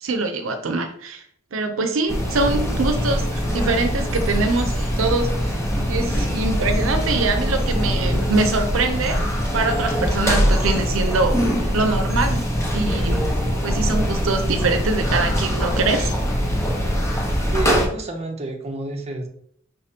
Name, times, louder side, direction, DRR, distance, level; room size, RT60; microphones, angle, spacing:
voice 1, 0.0-1.2 1.5-5.5 5.9-9.2 9.5-11.4 11.7-13.3 13.6-16.1, right 3 dB, 80° right, 7 dB, 0.6 m, -23 dB
sound 1, 2.1-17.9, equal, 15° left, 0.9 m, -22 dB
voice 2, 17.5-19.3, right 3 dB, 30° right, 2 dB, 0.7 m, -28 dB
5.6 x 3.3 x 2.8 m, 0.63 s
head